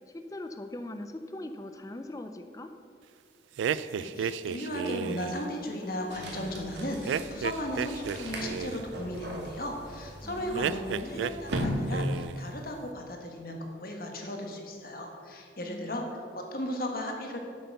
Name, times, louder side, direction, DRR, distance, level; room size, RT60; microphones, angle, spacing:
voice 1, 0.1-2.7 10.2-10.6 10.9-11.3 15.6-16.2, left 1 dB, 20° left, 7 dB, 0.4 m, -41 dB
sound 1, 3.6-5.4 7.1-8.9 10.5-11.7 11.9-12.4, right 7 dB, 85° right, 0.3 m, -33 dB
voice 2, 4.0-17.4, left 1 dB, 50° left, 2 dB, 1.5 m, -36 dB
sound 2, 6.1-12.4, equal, 70° right, 2.0 m, -37 dB
8.2 x 7.9 x 6.6 m, 2.2 s
head